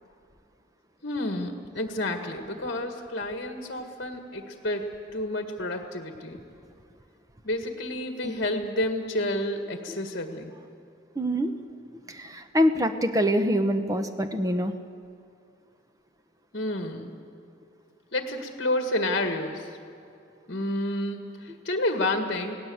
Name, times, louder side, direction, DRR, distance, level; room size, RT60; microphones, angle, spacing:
voice 1, 1.0-4.9 5.1-6.4 7.4-10.5 16.5-17.1 18.1-19.7 20.5-22.6, left 1 dB, 55° left, 5 dB, 1.8 m, -30 dB
voice 2, 11.1-11.5 12.1-14.7, equal, 15° right, 8 dB, 1.0 m, -25 dB
29.0 x 18.0 x 7.9 m, 2.4 s
head